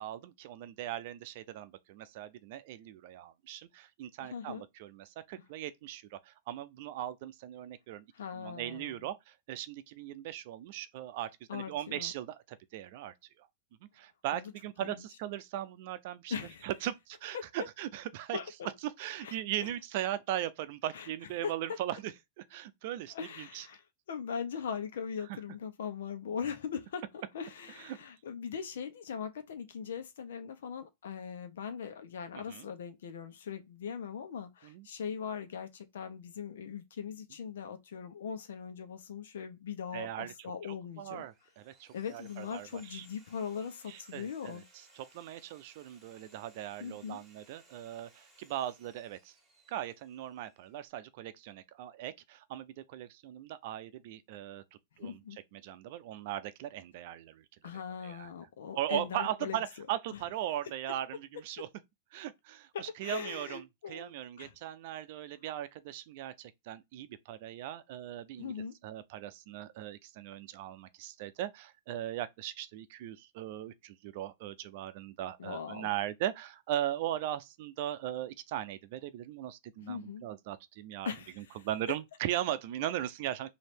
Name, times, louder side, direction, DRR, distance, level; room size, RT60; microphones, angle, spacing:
voice 1, 0.0-8.0 8.3-12.4 12.7-13.5 13.8-16.3 16.6-18.4 18.8-23.7 27.8-28.0 32.3-32.7 34.6-34.9 39.9-40.3 41.0-43.1 43.9-44.6 45.0-49.3 49.7-54.6 55.0-55.2 55.5-57.4 58.0-58.3 58.7-61.7 62.1-68.5 68.8-81.1 81.4-83.5, right 12 dB, 55° right, 0.6 m, -39 dB
voice 2, 4.2-4.6 8.1-9.0 11.5-12.1 14.3-14.5 14.8-15.0 16.3-16.7 17.3-17.4 18.3-18.7 19.2-19.4 20.9-21.1 21.4-21.5 23.1-23.8 24.1-41.2 41.9-44.6 46.8-47.2 55.0-55.4 57.6-59.9 60.1-60.2 62.7-64.1 64.4-64.5 68.4-68.7 75.4-75.9 79.8-80.2 81.0-81.6, left 7 dB, 80° left, 1.0 m, -40 dB
Sawing, 41.0-50.9, right 2 dB, 15° right, 1.7 m, -63 dB
3.2 x 2.8 x 4.4 m
hypercardioid pair, 140°, 0 cm